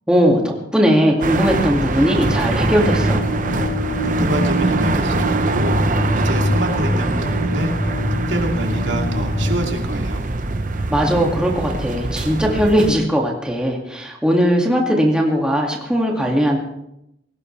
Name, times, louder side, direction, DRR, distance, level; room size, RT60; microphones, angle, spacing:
voice 1, 0.1-3.2 10.9-16.6, equal, 5° right, -1 dB, 2.2 m, -18 dB
sound 1, 1.2-12.9, right 2 dB, 45° right, 0.8 m, -23 dB
sound 2, 2.1-9.5, left 1 dB, 60° left, 4.2 m, -24 dB
voice 2, 4.0-5.8 6.1-7.7 8.3-10.2, right 1 dB, 85° right, 2 dB, 2.7 m, -26 dB
20.0 x 18.0 x 3.3 m, 0.83 s
head